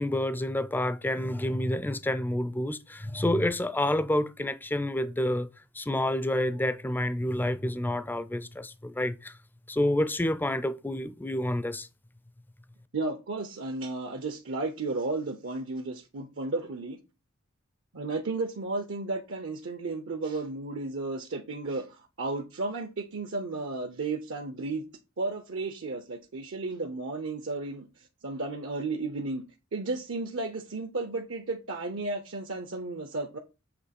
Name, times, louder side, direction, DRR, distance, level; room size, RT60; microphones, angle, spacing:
voice 1, 0.0-5.5 5.8-9.3 9.7-11.9, left 1 dB, 10° left, 0.4 m, -28 dB
voice 2, 12.9-17.0 17.9-24.8 25.2-27.9 28.2-29.4 29.7-33.4, right 3 dB, 65° right, 0.8 m, -33 dB
7.9 x 3.1 x 5.9 m
head